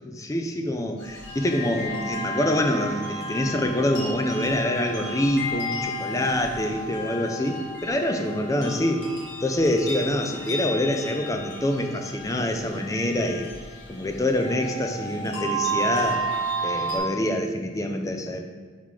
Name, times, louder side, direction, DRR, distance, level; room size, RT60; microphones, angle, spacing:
voice 1, 0.1-9.0 9.4-13.5 13.9-16.2 16.6-18.4, left 1 dB, 15° left, 4 dB, 0.4 m, -26 dB
sound 1, 1.0-17.0, right 2 dB, 60° left, 1.5 m, -33 dB
5.7 x 3.7 x 4.7 m, 1.5 s
head